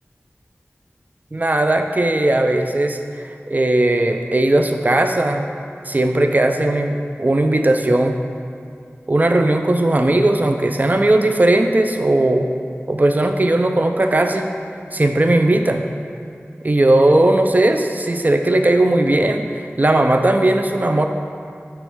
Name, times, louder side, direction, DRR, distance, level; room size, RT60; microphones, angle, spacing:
voice 1, 1.3-5.5 5.9-6.9 7.2-8.1 9.1-12.5 12.9-14.5 14.9-15.8 16.6-21.1, right 1 dB, 35° right, 5 dB, 0.5 m, -17 dB
6.1 x 6.1 x 3.6 m, 2.3 s
wide cardioid pair, 45°, 5 cm